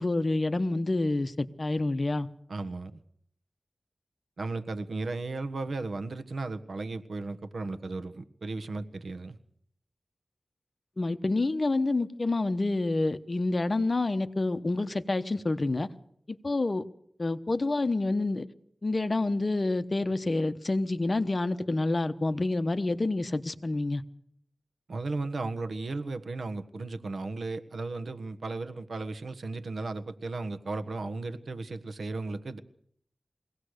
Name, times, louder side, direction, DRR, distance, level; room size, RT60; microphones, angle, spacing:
voice 1, 0.0-2.3 11.0-15.9 16.3-16.9 17.2-18.5 18.8-24.0, left 2 dB, 40° left, 1.0 m, -28 dB
voice 2, 2.5-3.0 4.4-9.4 24.9-32.6, right 3 dB, 75° right, 1.4 m, -35 dB
23.0 x 17.5 x 6.6 m
wide cardioid pair, 105°, 0 cm